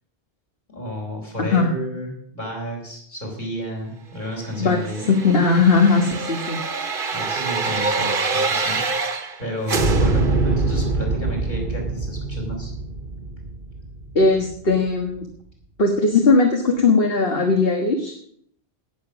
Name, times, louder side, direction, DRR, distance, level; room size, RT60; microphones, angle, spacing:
voice 1, 0.7-5.1 7.1-8.8 9.4-12.7, equal, 50° left, -1 dB, 4.6 m, -31 dB
voice 2, 1.4-1.7 4.6-4.8 5.1-6.6 14.2-15.3 15.8-18.1, left 3 dB, 65° left, 3 dB, 1.8 m, -18 dB
sound 1, 4.7-9.4 9.7-14.5 14.9-15.0, right 3 dB, 55° right, 1.3 m, -24 dB
18.0 x 6.8 x 6.2 m, 0.64 s
omnidirectional pair, 1.0 m